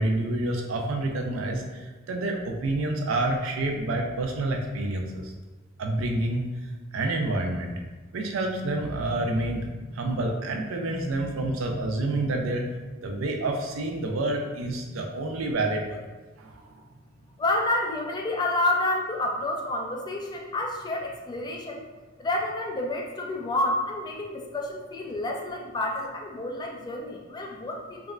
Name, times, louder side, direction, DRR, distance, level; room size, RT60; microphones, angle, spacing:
voice 1, 0.0-5.3 5.8-6.4 6.9-7.7 8.1-12.6 13.0-16.0 16.4-16.8, right 2 dB, 80° right, 2 dB, 0.4 m, -28 dB
voice 2, 17.4-21.8 22.2-28.1, left 2 dB, 20° left, 0 dB, 0.3 m, -29 dB
3.5 x 2.1 x 2.3 m, 1.2 s
head